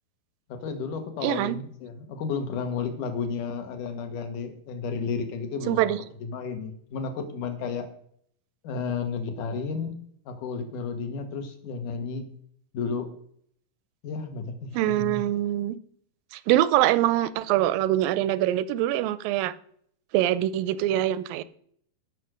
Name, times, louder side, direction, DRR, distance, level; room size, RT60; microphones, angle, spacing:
voice 1, 0.5-7.9 8.6-9.9 10.3-12.2 12.7-13.1 14.0-15.2, left 5 dB, 65° left, 6 dB, 3.0 m, -32 dB
voice 2, 1.2-1.6 5.7-6.0 14.7-15.8 16.5-19.5 20.1-21.4, right 13 dB, 85° right, 16 dB, 2.4 m, -24 dB
17.0 x 6.4 x 6.4 m, 0.64 s
omnidirectional pair, 4.0 m